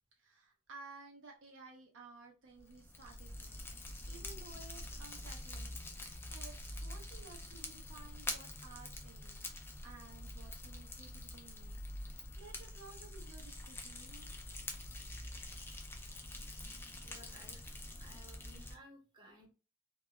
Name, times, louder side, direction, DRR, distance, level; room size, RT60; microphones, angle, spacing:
voice 1, 0.2-5.8 6.3-14.3 17.5-17.6, right 4 dB, 60° right, 0.5 m, -56 dB
Fire, 2.6-18.8, left 1 dB, 10° left, 0.3 m, -46 dB
voice 2, 17.0-19.5, equal, 20° right, 0.7 m, -58 dB
2.2 x 2.0 x 2.9 m
head